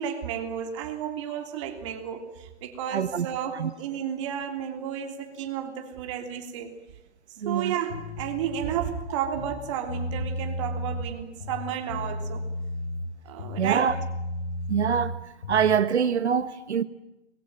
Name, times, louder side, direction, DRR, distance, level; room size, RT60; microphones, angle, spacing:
voice 1, 0.0-6.7 7.4-12.4 13.2-13.9, right 9 dB, 25° right, 3.3 m, -32 dB
voice 2, 2.9-3.2 3.5-3.7 7.4-7.7 13.6-13.9 14.7-15.1 15.5-16.8, right 7 dB, 75° right, 1.5 m, -24 dB
sound 1, 7.9-9.0 9.3-11.1 11.4-13.1 13.4-15.8, left 1 dB, 80° left, 6.8 m, -34 dB
24.5 x 22.0 x 8.9 m
hypercardioid pair, 165°, 34 cm